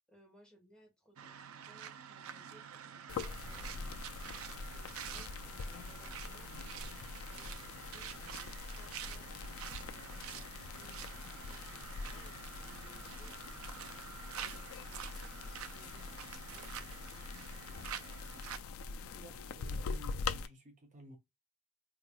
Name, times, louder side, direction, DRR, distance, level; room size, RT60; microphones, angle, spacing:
voice 1, 0.1-4.0 4.7-9.3 9.8-13.9 14.3-17.9, right 1 dB, 5° left, 1.1 m, -64 dB
sound 1, 1.2-18.6, right 9 dB, 75° right, 0.4 m, -48 dB
sound 2, 3.1-20.5, left 4 dB, 80° left, 0.4 m, -44 dB
voice 2, 19.1-21.2, right 1 dB, 35° right, 0.6 m, -54 dB
3.9 x 3.0 x 2.3 m
head